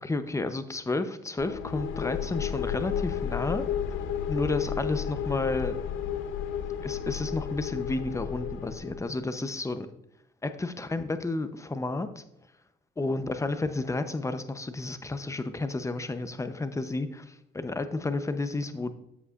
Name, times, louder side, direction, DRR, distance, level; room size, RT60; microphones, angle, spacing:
voice 1, 0.0-3.7 4.3-5.8 6.8-9.9 10.4-12.2 13.0-18.9, left 2 dB, 15° left, 10 dB, 0.6 m, -31 dB
sound 1, 1.4-9.1, left 8 dB, 90° left, 0.7 m, -32 dB
8.1 x 7.7 x 2.4 m, 0.80 s
cardioid pair, 90°, 20 cm